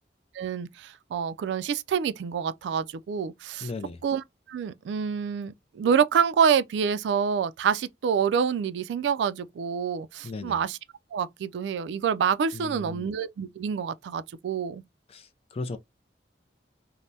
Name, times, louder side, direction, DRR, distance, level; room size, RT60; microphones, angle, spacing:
voice 1, 0.3-3.7 4.0-10.8 11.1-14.8, right 7 dB, 75° right, 0.3 m, -27 dB
voice 2, 3.6-4.0 10.2-10.6 12.5-13.1 15.1-15.8, left 3 dB, 35° left, 0.4 m, -36 dB
3.2 x 2.0 x 2.7 m
head